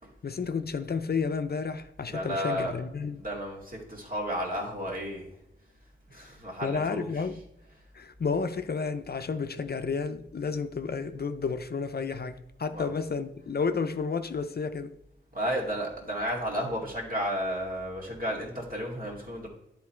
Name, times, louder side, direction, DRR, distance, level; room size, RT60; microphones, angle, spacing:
voice 1, 0.2-3.2 6.1-6.2 6.6-7.4 7.9-15.0, left 5 dB, 50° left, 0.5 m, -31 dB
voice 2, 2.0-2.7 3.1-5.3 6.1-7.1 12.7-12.9 15.3-19.5, equal, 45° right, 2.2 m, -32 dB
11.0 x 3.8 x 4.4 m
wide cardioid pair, 85°, 20 cm